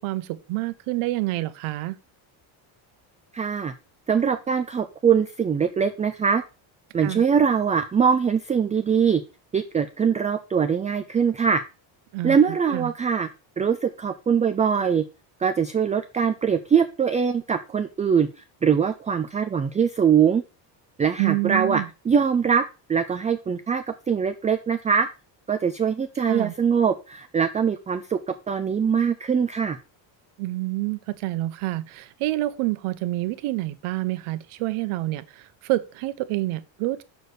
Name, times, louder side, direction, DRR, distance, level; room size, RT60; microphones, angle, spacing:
voice 1, 0.0-2.0 7.0-7.2 12.1-12.4 12.7-12.9 21.2-21.9 26.3-26.5 30.4-37.0, right 18 dB, 85° right, 1.0 m, -27 dB
voice 2, 3.3-3.7 4.1-6.4 6.9-9.2 9.5-11.6 12.2-13.3 13.6-15.0 15.4-18.3 18.6-20.4 21.0-22.6 22.9-25.1 25.5-28.2 28.5-29.8, right 7 dB, 15° right, 0.3 m, -22 dB
6.8 x 4.4 x 6.5 m
cardioid pair, 145°, 48 cm